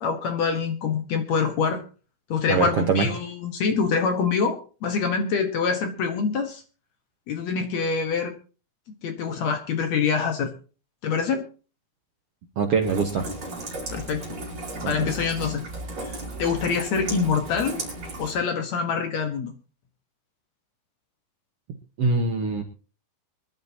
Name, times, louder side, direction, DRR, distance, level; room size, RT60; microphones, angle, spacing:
voice 1, 0.0-1.8 2.3-6.6 7.3-8.4 9.0-10.5 11.0-11.5 13.9-14.3 14.9-15.6 16.0-17.8 18.2-19.5, left 5 dB, 60° left, 6 dB, 2.1 m, -25 dB
voice 2, 2.5-3.1 12.6-13.2 14.8-14.9 22.0-22.6, right 4 dB, 60° right, 4 dB, 1.6 m, -23 dB
Rain, 12.8-18.4, right 2 dB, 30° right, 4.8 m, -35 dB
23.5 x 11.5 x 2.8 m, 0.36 s
omnidirectional pair, 4.2 m